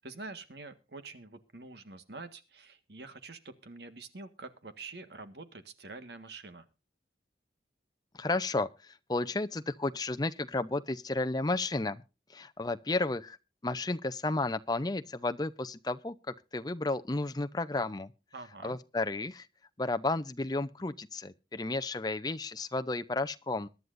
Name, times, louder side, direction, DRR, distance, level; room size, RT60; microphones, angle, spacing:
voice 1, 0.0-6.7 18.3-18.8, right 3 dB, 65° right, 1.6 m, -46 dB
voice 2, 8.1-12.0 12.3-13.4 13.6-18.1 18.6-19.5 19.8-23.7, left 2 dB, 20° left, 0.6 m, -32 dB
22.5 x 11.0 x 2.6 m
head